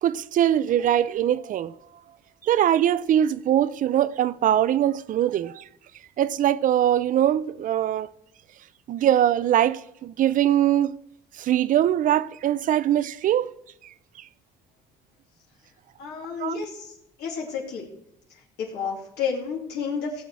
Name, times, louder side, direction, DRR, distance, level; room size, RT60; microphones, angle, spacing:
voice 1, 0.0-1.7 2.4-5.6 6.2-8.1 8.9-11.0 11.4-13.5 14.2-14.3 16.4-16.6, right 11 dB, 50° right, 0.5 m, -22 dB
voice 2, 16.0-17.9 18.6-20.2, left 6 dB, 80° left, 2.5 m, -31 dB
16.5 x 7.2 x 4.7 m
cardioid pair, 110°, 17 cm